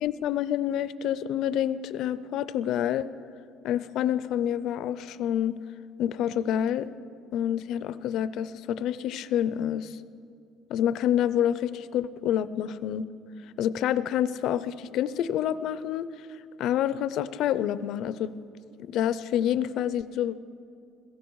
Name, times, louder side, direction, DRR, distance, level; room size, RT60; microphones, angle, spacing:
voice 1, 0.0-3.1 3.6-5.6 6.0-6.9 7.3-9.9 10.7-13.0 13.6-16.1 16.6-18.3 18.8-20.3, left 10 dB, 60° left, 15 dB, 0.4 m, -27 dB
16.5 x 14.5 x 4.7 m, 2.6 s
cardioid pair, 145°, 0 cm